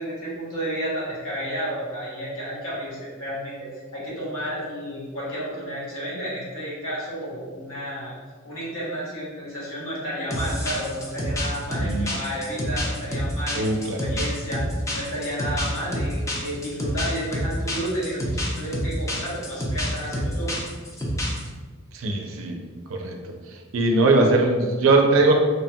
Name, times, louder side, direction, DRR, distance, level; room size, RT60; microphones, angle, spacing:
voice 1, 0.0-8.1 8.4-14.7 14.9-20.5, equal, 90° left, -6 dB, 1.0 m, -31 dB
sound 1, 10.3-21.5, equal, 15° left, 0.3 m, -28 dB
voice 2, 11.8-12.2 13.5-14.0 21.9-22.6 22.9-23.2 23.7-25.4, right 2 dB, 75° right, 2 dB, 0.4 m, -20 dB
3.1 x 2.1 x 2.7 m, 1.5 s
head